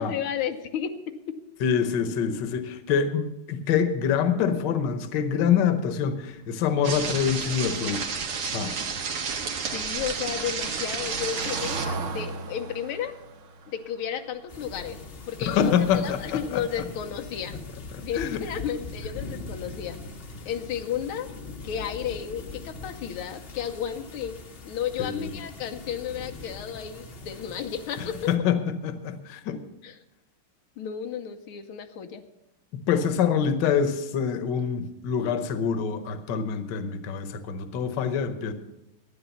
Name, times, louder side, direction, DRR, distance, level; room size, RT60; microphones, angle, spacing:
voice 1, 0.0-1.4 9.7-13.2 13.7-15.0 15.3-17.6 18.0-20.0 20.4-21.3 21.6-24.3 24.6-28.3 29.8-30.0 30.8-32.2, left 8 dB, 90° left, 6 dB, 1.7 m, -33 dB
voice 2, 1.6-8.1 8.5-8.7 15.5-16.6 17.9-18.4 25.0-25.2 28.3-29.6 32.9-38.5, left 7 dB, 60° left, 10 dB, 1.5 m, -25 dB
sound 1, 6.8-11.9, right 5 dB, 85° right, 2.3 m, -31 dB
Car passing by / Engine, 8.4-15.4 15.7-16.0 16.2-16.3, right 3 dB, 55° right, 0.8 m, -39 dB
sound 2, 14.5-28.4, left 3 dB, 45° left, 0.8 m, -41 dB
12.0 x 9.7 x 6.9 m, 0.91 s
omnidirectional pair, 2.3 m